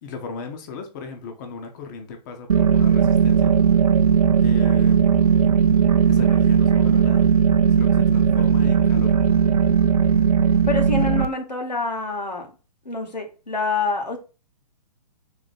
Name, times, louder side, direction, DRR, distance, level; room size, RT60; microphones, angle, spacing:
voice 1, 0.0-3.6 4.4-5.4 6.1-7.3 7.7-9.2, left 4 dB, 30° left, 0.7 m, -36 dB
sound 1, 2.5-11.2, right 7 dB, 60° right, 0.5 m, -17 dB
voice 2, 10.7-12.5 12.8-14.2, left 4 dB, 80° left, 1.1 m, -26 dB
3.9 x 2.9 x 4.1 m
figure-of-eight pair, 125°, 21 cm